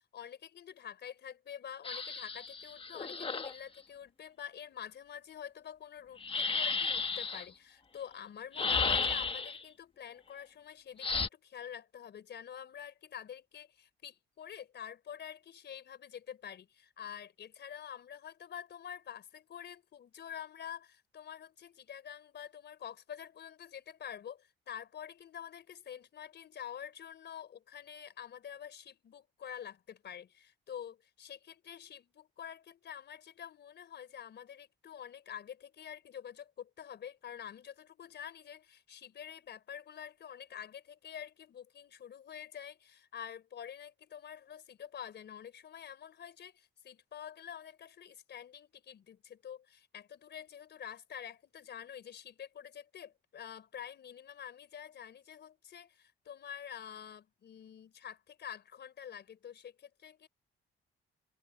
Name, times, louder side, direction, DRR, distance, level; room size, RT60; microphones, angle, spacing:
voice 1, 0.0-60.3, left 9 dB, 60° left, 4.4 m, -47 dB
sound 1, 1.8-3.6 6.2-7.5 8.5-9.6 11.0-11.3, left 4 dB, 25° left, 1.3 m, -33 dB
cardioid pair, 90°, 20 cm